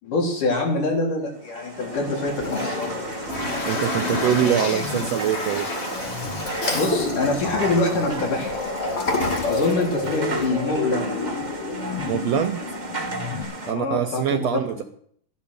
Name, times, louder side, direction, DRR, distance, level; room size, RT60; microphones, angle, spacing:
voice 1, 0.0-3.1 4.1-4.8 6.7-8.6 9.5-11.2 13.7-14.6, left 2 dB, 75° left, 0 dB, 5.2 m, -25 dB
sound 1, 1.3-13.7, right 2 dB, 35° right, 0.7 m, -34 dB
sound 2, 1.8-13.4, left 3 dB, 45° left, 3.3 m, -31 dB
Toilet flush, 2.3-10.5, left 2 dB, 25° left, 2.1 m, -30 dB
voice 2, 3.7-5.7 12.1-12.6 13.7-14.8, right 10 dB, 75° right, 8 dB, 1.5 m, -24 dB
15.0 x 11.5 x 6.6 m, 0.64 s
omnidirectional pair, 3.7 m